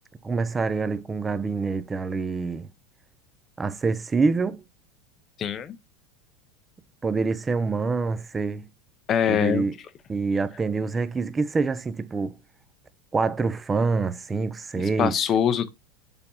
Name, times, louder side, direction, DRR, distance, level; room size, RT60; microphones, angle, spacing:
voice 1, 0.2-2.7 3.6-4.6 7.0-8.7 9.3-9.7 10.1-12.4 13.1-15.1, right 4 dB, 15° right, 0.6 m, -26 dB
voice 2, 5.4-5.8 9.1-9.7 15.0-15.7, left 8 dB, 30° left, 0.7 m, -23 dB
6.9 x 4.3 x 5.4 m
supercardioid pair, 150°, 0 cm